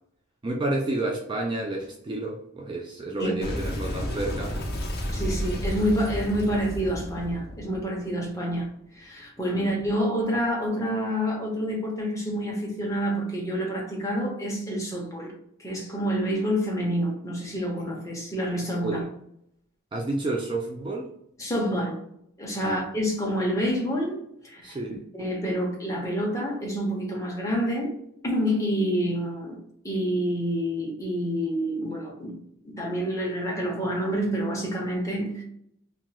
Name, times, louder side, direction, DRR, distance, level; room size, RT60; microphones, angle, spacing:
voice 1, 0.4-4.6 9.5-9.7 18.8-19.0 19.9-21.1 22.6-22.8 24.6-25.0, right 2 dB, 20° right, 0.3 m, -30 dB
Boom, 3.4-8.6, equal, 45° left, 0.6 m, -32 dB
voice 2, 5.1-8.7 9.0-15.3 15.6-19.0 21.4-22.0 22.4-24.8 25.1-27.9 28.2-29.6 29.8-32.4 32.6-35.4, equal, 15° left, 0.8 m, -28 dB
2.9 x 2.9 x 2.3 m
head